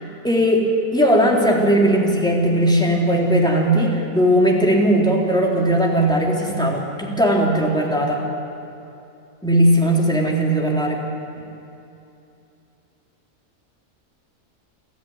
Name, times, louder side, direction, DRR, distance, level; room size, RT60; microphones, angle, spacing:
voice 1, 0.2-0.7 0.9-8.2 9.4-11.0, equal, 5° left, -2 dB, 3.5 m, -18 dB
28.0 x 13.5 x 9.7 m, 2.8 s
omnidirectional pair, 1.6 m